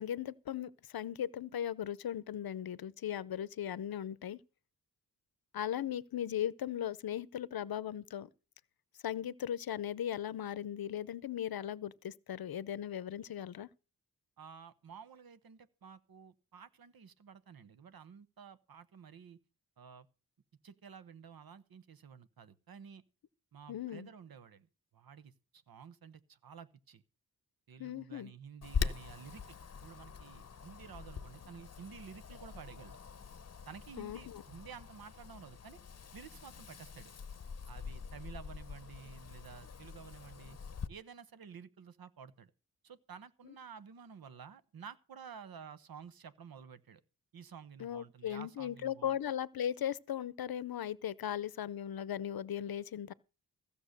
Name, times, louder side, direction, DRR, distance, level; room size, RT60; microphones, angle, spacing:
voice 1, 0.0-4.4 5.5-8.3 9.0-13.7 23.7-24.1 27.8-28.3 34.0-34.4 47.8-53.1, left 10 dB, 80° left, 0.7 m, -38 dB
voice 2, 14.4-19.4 19.8-20.1 20.6-23.0 23.5-24.7 24.9-27.0 27.7-33.0 33.7-35.8 36.1-37.1 37.7-40.6 40.9-42.5 42.8-47.0 47.3-49.2, right 6 dB, 75° right, 1.1 m, -52 dB
Wind, 28.6-40.9, left 6 dB, 45° left, 0.8 m, -43 dB
15.5 x 6.9 x 6.6 m
wide cardioid pair, 110°, 36 cm